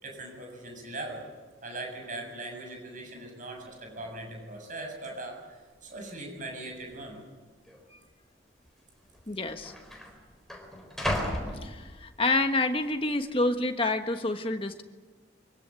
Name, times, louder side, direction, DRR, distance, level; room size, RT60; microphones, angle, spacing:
voice 1, 0.0-1.2 1.6-7.2, right 2 dB, 45° right, 2 dB, 7.2 m, -40 dB
sound 1, 3.6-3.7 3.9-4.3 5.0-5.1 5.9-6.4 6.7-6.8 7.6-7.8 8.8-8.9 9.1-12.4 12.8-13.3, equal, ahead, 4.2 m, -36 dB
voice 2, 9.3-9.7 11.6-14.8, left 2 dB, 30° left, 6 dB, 1.5 m, -28 dB
24.5 x 17.0 x 9.7 m, 1.3 s
head